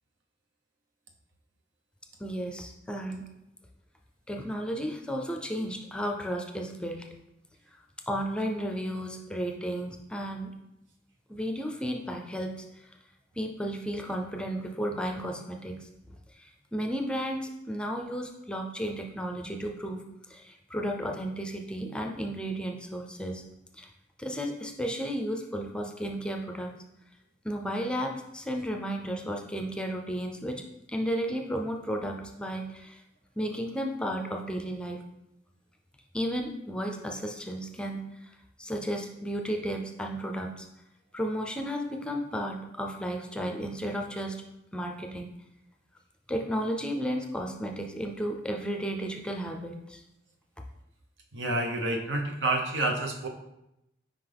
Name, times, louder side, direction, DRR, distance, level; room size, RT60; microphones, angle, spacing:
voice 1, 2.2-3.3 4.3-7.1 8.1-10.5 11.3-12.9 13.4-15.9 16.3-23.4 23.7-23.9 24.2-26.7 27.4-33.0 33.4-35.0 36.1-40.7 41.1-44.4 44.7-45.3 46.3-50.0, equal, 5° left, 3 dB, 0.5 m, -33 dB
voice 2, 51.3-53.3, right 2 dB, 85° right, 2 dB, 0.9 m, -28 dB
5.8 x 5.0 x 3.4 m, 0.87 s
head